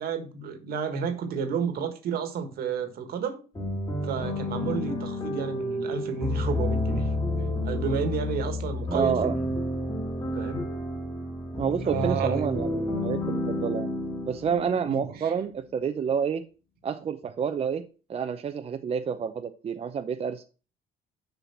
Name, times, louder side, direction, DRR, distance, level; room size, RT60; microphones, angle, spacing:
voice 1, 0.0-3.4 4.0-7.1 7.6-9.5 10.3-10.7 11.8-12.4 14.8-15.3, right 6 dB, 65° right, 1.7 m, -31 dB
sound 1, 3.5-15.3, left 1 dB, 25° left, 2.6 m, -30 dB
voice 2, 8.9-9.4 11.6-13.9 14.3-16.4 16.8-17.8 18.1-20.5, right 7 dB, 35° right, 0.6 m, -28 dB
7.1 x 5.6 x 5.7 m
cardioid pair, 110°, 17 cm